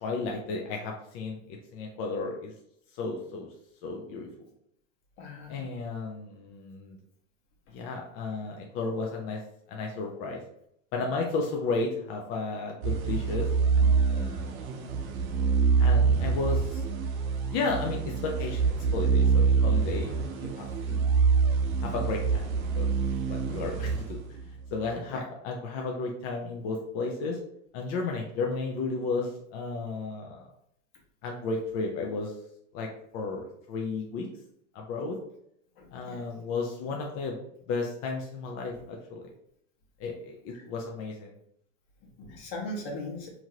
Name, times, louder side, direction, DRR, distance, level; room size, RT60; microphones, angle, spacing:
voice 1, 0.0-1.4 1.7-2.5 2.9-3.5 3.8-4.5 5.5-7.0 7.7-9.4 9.7-10.4 10.9-14.5 15.8-16.8 17.5-21.1 21.8-22.9 23.3-27.4 27.7-30.5 31.2-32.3 32.7-34.3 34.7-35.2 35.9-37.4 37.7-39.3 40.0-41.3, left 3 dB, 35° left, 0 dB, 0.4 m, -33 dB
voice 2, 5.2-5.7 25.1-25.2 35.8-36.2 42.2-43.3, left 1 dB, 55° left, -1 dB, 1.1 m, -38 dB
sound 1, 12.8-24.7, right 5 dB, 85° right, 0.7 m, -26 dB
2.9 x 2.5 x 2.8 m, 0.73 s
supercardioid pair, 130°, 40 cm